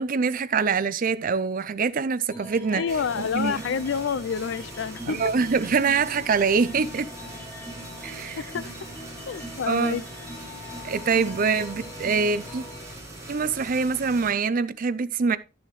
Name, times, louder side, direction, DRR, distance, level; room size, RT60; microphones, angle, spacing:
voice 1, 0.0-2.9 3.1-3.5 5.1-7.1 8.0-8.4 9.7-10.0 10.8-12.6 13.3-15.4, right 5 dB, 45° right, 0.5 m, -24 dB
sound 1, 2.3-12.9, equal, 10° left, 3.4 m, -42 dB
voice 2, 2.7-5.2 8.4-8.7 9.3-10.0, left 6 dB, 70° left, 0.4 m, -28 dB
sound 2, 2.9-14.3, right 1 dB, 15° right, 3.1 m, -41 dB
11.0 x 6.9 x 3.1 m
head